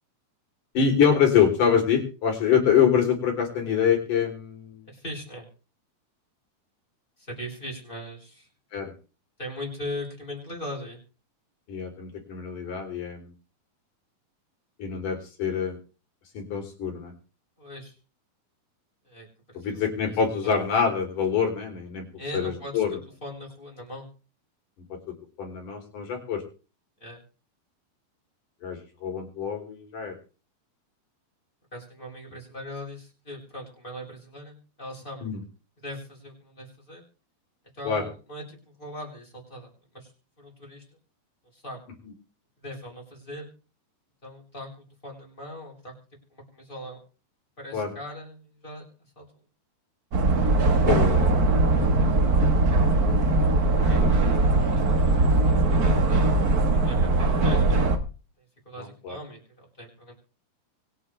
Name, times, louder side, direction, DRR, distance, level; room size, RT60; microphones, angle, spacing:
voice 1, 0.7-4.8 8.7-8.9 11.7-13.3 14.8-15.8 16.3-17.1 19.5-22.0 22.3-23.0 25.4-26.4 28.6-30.1 35.2-35.4 37.8-38.1 42.0-42.1 47.7-47.9 50.9-51.5 53.7-54.1 58.8-59.2, left 7 dB, 55° left, 2 dB, 4.9 m, -25 dB
voice 2, 4.8-5.5 7.2-8.5 9.4-11.0 17.6-17.9 19.0-19.8 20.4-20.5 22.2-24.1 27.0-27.2 31.7-35.3 35.8-37.0 37.8-40.1 40.4-41.0 41.5-41.8 42.6-43.5 44.2-45.9 46.3-47.0 47.6-48.8 49.2-49.3 53.9-56.4 56.7-57.8 58.7-60.1, left 1 dB, 10° left, -2 dB, 7.2 m, -40 dB
sound 1, 50.1-58.0, right 2 dB, 80° right, 0.8 m, -21 dB
25.0 x 8.5 x 3.4 m, 0.36 s
omnidirectional pair, 4.5 m